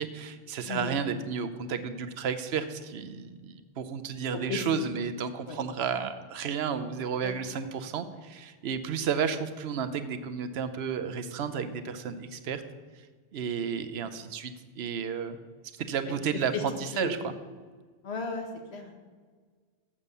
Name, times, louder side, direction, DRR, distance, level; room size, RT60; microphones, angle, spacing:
voice 1, 0.0-12.6 13.3-15.4 15.7-17.3, right 6 dB, 80° right, 10 dB, 0.9 m, -32 dB
voice 2, 18.0-18.9, left 4 dB, 90° left, 3 dB, 1.5 m, -34 dB
7.3 x 7.0 x 6.6 m, 1.5 s
omnidirectional pair, 1.1 m